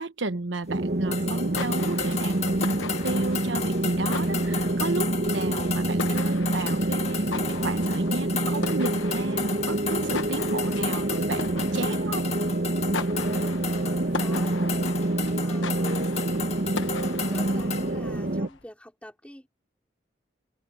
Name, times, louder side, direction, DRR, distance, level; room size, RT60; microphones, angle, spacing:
voice 1, 0.0-12.3, right 2 dB, 85° right, 1.2 m, -33 dB
sound 1, 0.7-18.5, right 1 dB, 50° right, 1.3 m, -27 dB
sound 2, 1.1-17.9, left 7 dB, 35° left, 1.8 m, -35 dB
sound 3, 1.3-18.6, left 5 dB, 90° left, 1.1 m, -40 dB
voice 2, 13.6-16.1 17.1-19.5, equal, 5° left, 4.6 m, -47 dB
open air
head